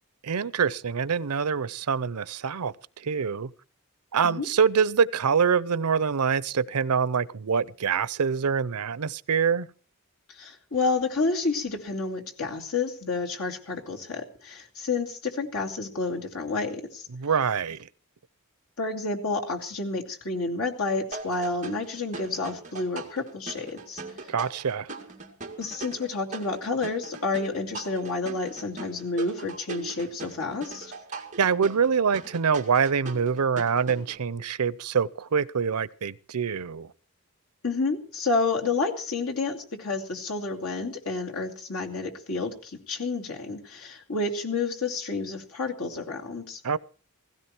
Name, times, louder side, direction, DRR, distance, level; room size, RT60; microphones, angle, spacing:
voice 1, 0.2-3.5 4.1-9.7 17.1-17.9 24.3-24.9 31.4-36.9 46.6-46.8, right 6 dB, 90° right, 0.6 m, -25 dB
voice 2, 10.3-17.1 18.8-24.0 25.6-30.9 37.6-46.6, left 3 dB, 75° left, 2.6 m, -30 dB
sound 1, 21.1-34.2, right 3 dB, 35° right, 2.2 m, -40 dB
16.5 x 16.0 x 4.5 m
head